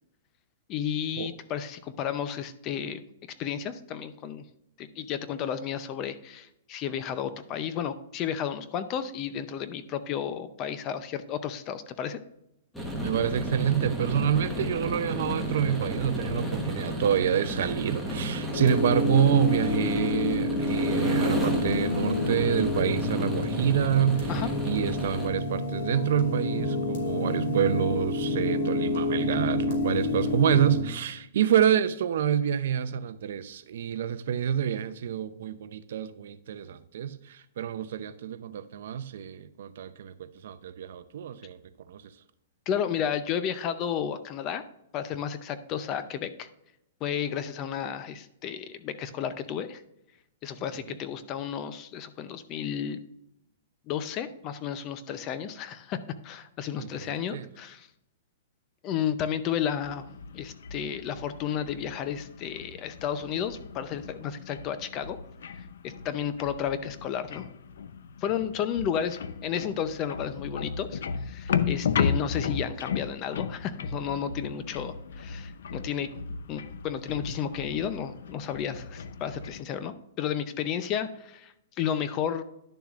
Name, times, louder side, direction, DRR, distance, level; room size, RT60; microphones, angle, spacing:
voice 1, 0.7-3.0 3.4-4.4 4.8-12.2 24.3-24.5 42.7-44.6 44.9-46.5 47.0-49.8 50.4-53.0 53.9-57.9 58.8-60.1 60.3-65.2 65.8-67.5 68.2-76.1 76.5-82.4, left 8 dB, 25° left, 0.5 m, -32 dB
sound 1, 12.7-25.3, equal, ahead, 1.1 m, -32 dB
voice 2, 13.0-41.6 41.9-42.1 50.7-51.0 56.8-57.5, right 9 dB, 60° right, 0.6 m, -27 dB
sound 2, 18.5-30.8, left 2 dB, 55° left, 3.1 m, -29 dB
sound 3, 59.8-79.6, left 6 dB, 75° left, 0.6 m, -35 dB
11.0 x 7.0 x 2.4 m
hypercardioid pair, 165°, 0 cm